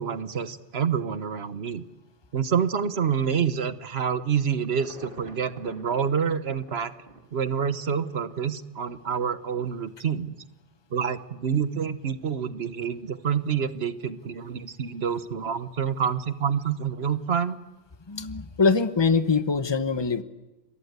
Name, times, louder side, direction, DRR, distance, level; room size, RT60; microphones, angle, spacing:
voice 1, 0.0-1.8 2.3-6.9 7.3-10.4 10.9-17.6, right 7 dB, 75° right, 12 dB, 1.4 m, -27 dB
Insect / Thunder / Rain, 4.2-8.5 9.0-9.1, right 2 dB, 55° right, 3.1 m, -49 dB
voice 2, 18.1-20.2, left 4 dB, 25° left, 10 dB, 1.1 m, -23 dB
28.0 x 23.0 x 8.1 m, 1.1 s
omnidirectional pair, 1.1 m